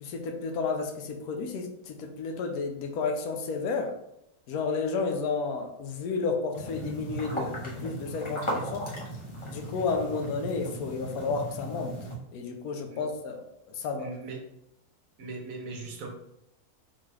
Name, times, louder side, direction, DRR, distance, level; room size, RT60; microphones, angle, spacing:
voice 1, 0.0-3.9 4.5-8.9 9.5-11.9 12.3-13.4 13.8-14.1, left 4 dB, 80° left, 4 dB, 1.0 m, -31 dB
sound 1, 6.5-12.2, right 1 dB, 30° left, 0.5 m, -37 dB
voice 2, 14.0-14.4 15.2-16.1, right 3 dB, 70° right, 0 dB, 1.1 m, -39 dB
3.8 x 2.3 x 3.1 m, 0.80 s
omnidirectional pair, 1.6 m